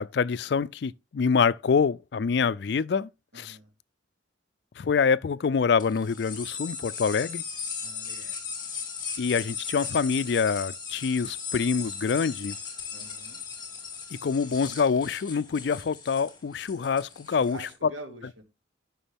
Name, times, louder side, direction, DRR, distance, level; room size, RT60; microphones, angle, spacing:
voice 1, 0.0-3.1 3.3-3.6 4.8-7.4 9.2-12.5 14.2-17.9, left 5 dB, 55° left, 0.4 m, -26 dB
voice 2, 3.3-3.7 7.8-8.4 12.9-13.4 17.3-18.4, right 1 dB, 80° right, 2.5 m, -45 dB
sound 1, 5.8-17.7, left 6 dB, 20° left, 2.3 m, -37 dB
11.5 x 6.1 x 3.5 m
head